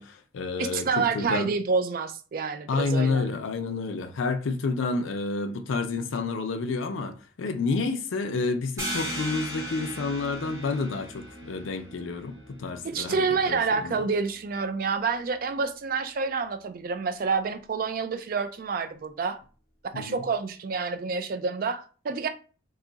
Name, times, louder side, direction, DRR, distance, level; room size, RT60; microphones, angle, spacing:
voice 1, 0.0-1.5 2.7-14.1 19.9-20.2, left 3 dB, 85° left, 0.5 m, -29 dB
voice 2, 0.6-3.3 12.8-19.4 19.9-22.3, right 4 dB, 45° right, 0.3 m, -28 dB
sound 1, 8.8-14.1, equal, 15° right, 1.0 m, -38 dB
2.6 x 2.4 x 3.8 m
head